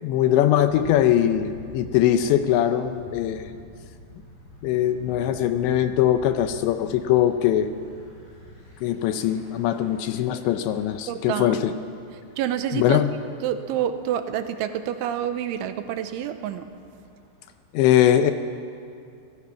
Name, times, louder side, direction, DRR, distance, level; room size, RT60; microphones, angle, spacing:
voice 1, 0.0-3.5 4.6-7.7 8.8-11.7 12.7-13.1 17.7-18.3, left 11 dB, 80° left, 9 dB, 2.8 m, -21 dB
Thunder / Bicycle, 0.6-17.8, left 1 dB, 35° left, 6.6 m, -47 dB
voice 2, 11.1-11.6 12.4-13.0 13.4-16.7, right 10 dB, 85° right, 9 dB, 3.1 m, -28 dB
30.0 x 18.0 x 5.9 m, 2.4 s
omnidirectional pair, 5.6 m